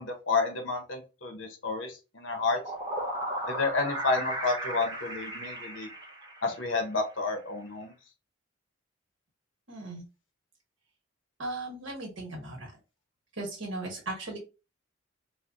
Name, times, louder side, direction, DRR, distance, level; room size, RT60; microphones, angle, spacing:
voice 1, 0.0-2.6 3.5-5.9 6.4-7.9, left 3 dB, 65° left, 4 dB, 0.8 m, -30 dB
sound 1, 2.3-6.8, right 1 dB, 20° right, 0.8 m, -36 dB
voice 2, 9.7-10.0 11.4-12.7 13.4-14.4, right 2 dB, 65° right, -1 dB, 1.3 m, -37 dB
4.3 x 2.2 x 2.5 m, 0.31 s
head